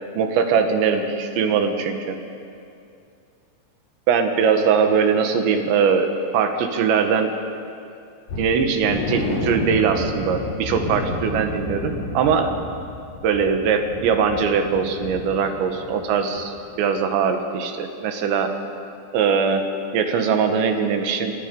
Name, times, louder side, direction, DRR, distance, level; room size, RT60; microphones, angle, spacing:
voice 1, 0.2-2.2 4.1-7.3 8.4-12.5 13.2-18.5 19.1-19.6 19.9-21.3, right 6 dB, 70° right, 6 dB, 3.6 m, -21 dB
sound 1, 8.3-16.1 16.3-16.5 16.9-17.0, left 1 dB, 50° left, 4.5 m, -31 dB
28.0 x 23.0 x 5.4 m, 2.5 s
omnidirectional pair, 5.6 m